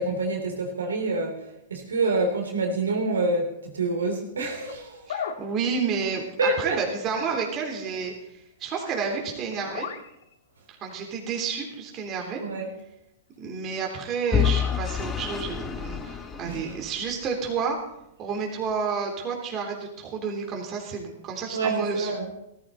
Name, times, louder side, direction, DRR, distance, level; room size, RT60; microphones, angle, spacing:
voice 1, 0.0-5.1 6.4-6.8 12.4-12.8 16.4-16.7 21.5-22.3, right 3 dB, 80° right, 2 dB, 3.3 m, -27 dB
sound 1, 4.4-4.8 5.1-5.4 8.9-9.1 9.5-10.7 11.3-11.4 13.1-13.2 14.3-14.4 15.6-15.7, left 7 dB, 70° left, 1.5 m, -35 dB
voice 2, 5.1-8.1 8.6-9.9 10.8-12.4 13.4-17.8 18.2-22.1, right 5 dB, 30° right, 1 dB, 3.5 m, -30 dB
Vehicle / Engine, 14.3-17.3, left 8 dB, 20° left, 1.4 m, -28 dB
16.5 x 14.0 x 4.1 m, 0.84 s
hypercardioid pair, 110°, 0 cm